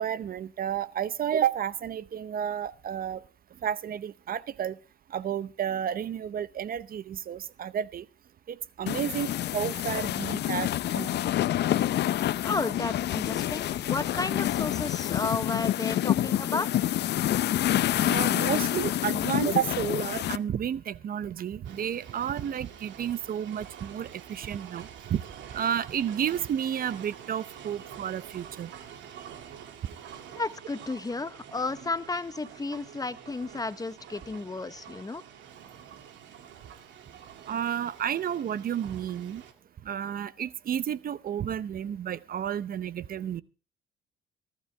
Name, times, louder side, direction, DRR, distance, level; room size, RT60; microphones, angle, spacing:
voice 1, 0.0-3.2 3.6-4.8 5.1-8.1 8.5-11.2 18.0-25.2 25.5-28.7 37.5-39.4 39.8-43.4, right 9 dB, 50° right, 17 dB, 0.7 m, -31 dB
sound 1, 8.9-20.4, left 12 dB, 65° left, 0.6 m, -27 dB
voice 2, 12.4-16.8 30.4-35.2, left 3 dB, 20° left, 14 dB, 0.9 m, -33 dB
sound 2, 21.6-39.5, right 8 dB, 75° right, 2.2 m, -47 dB
23.0 x 12.0 x 3.3 m, 0.32 s
cardioid pair, 90°, 19 cm